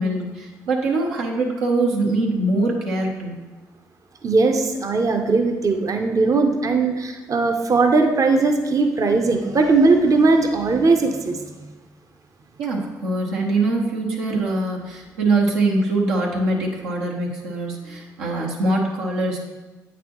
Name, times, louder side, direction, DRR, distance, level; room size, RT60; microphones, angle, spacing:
voice 1, 0.0-3.3 12.6-19.4, right 2 dB, 90° right, -2 dB, 0.9 m, -23 dB
voice 2, 4.2-11.7, right 3 dB, 40° right, 4 dB, 0.6 m, -19 dB
8.4 x 4.1 x 3.0 m, 1.2 s
hypercardioid pair, 45°, 8 cm